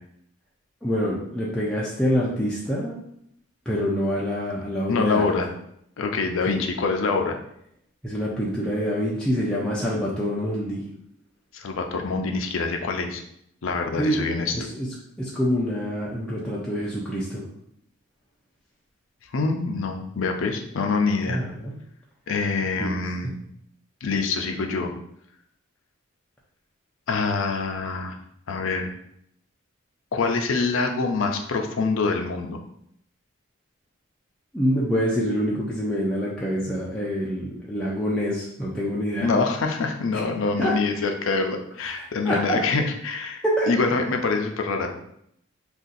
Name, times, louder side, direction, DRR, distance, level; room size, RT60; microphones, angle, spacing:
voice 1, 0.8-3.0 3.7-5.2 6.5-6.6 8.0-10.8 14.0-14.2 14.5-14.9 15.2-17.4 21.3-21.7 22.8-22.9 34.5-39.3 40.6-40.7 42.0-42.6 43.4-43.7, equal, 5° left, -7 dB, 0.4 m, -26 dB
voice 2, 4.9-5.5 6.0-7.4 11.5-13.2 13.6-14.6 19.3-21.4 22.3-23.4 24.0-24.9 27.1-28.1 28.5-28.9 30.1-32.6 39.2-45.0, left 4 dB, 70° left, 4 dB, 0.4 m, -25 dB
2.6 x 2.4 x 3.9 m, 0.73 s
head